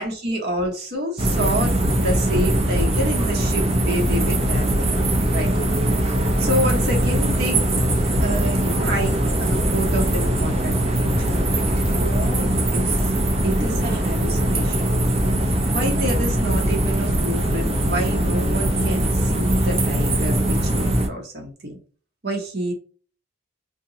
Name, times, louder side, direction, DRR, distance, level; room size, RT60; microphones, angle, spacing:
voice 1, 0.0-4.9 5.3-5.5 6.4-7.6 8.0-11.5 11.9-13.1 13.4-21.8 22.2-22.7, equal, 50° right, 1 dB, 0.9 m, -28 dB
sound 1, 1.2-21.1, right 1 dB, 30° right, 0.5 m, -21 dB
2.7 x 2.2 x 3.8 m, 0.40 s
head